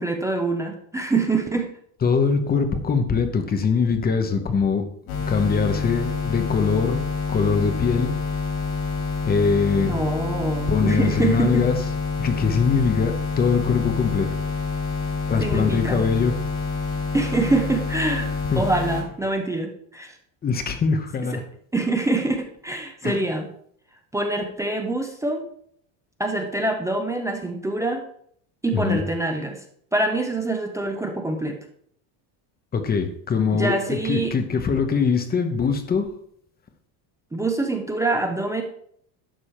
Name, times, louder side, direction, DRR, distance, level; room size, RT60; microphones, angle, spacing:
voice 1, 0.0-1.7 9.8-11.7 15.4-16.0 17.1-18.3 18.6-20.2 21.3-21.4 21.7-23.5 24.1-25.5 26.2-28.0 28.6-29.6 29.9-31.6 33.5-34.4 37.3-38.6, right 2 dB, 5° right, 4 dB, 0.3 m, -25 dB
voice 2, 2.0-4.8 5.3-7.0 7.3-8.1 9.3-9.9 10.7-11.8 12.2-14.3 15.3-16.4 18.5-18.6 20.4-21.4 23.0-23.2 28.7-29.0 32.7-36.1, left 5 dB, 20° left, 7 dB, 0.8 m, -22 dB
sound 1, 5.1-19.0, left 4 dB, 70° left, 4.4 m, -27 dB
11.5 x 7.0 x 4.3 m, 0.64 s
cardioid pair, 175°, 50 cm